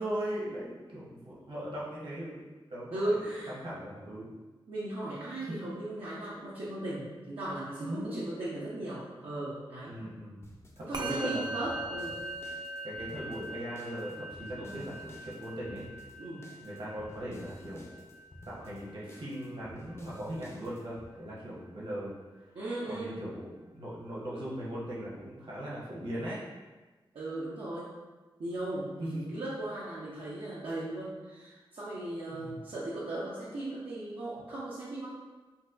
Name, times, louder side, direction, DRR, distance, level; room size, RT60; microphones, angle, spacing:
voice 1, 0.0-2.4 2.7-3.2 3.5-4.3 7.8-8.2 9.9-10.5 10.8-11.5 12.8-15.8 16.6-18.0 18.5-22.1 22.8-26.4 29.0-29.2 32.3-32.6, equal, 65° right, -7 dB, 1.1 m, -39 dB
voice 2, 2.9-3.5 4.7-10.0 10.8-12.2 14.6-14.8 16.2-16.4 22.5-23.2 27.1-27.9 28.4-35.2, right 1 dB, 85° right, -10 dB, 0.7 m, -37 dB
sound 1, 10.4-21.1, left 1 dB, 25° left, 0.5 m, -53 dB
Musical instrument, 10.9-20.5, right 1 dB, 50° right, 0.5 m, -42 dB
4.0 x 2.3 x 2.5 m, 1.2 s
cardioid pair, 50°, 9 cm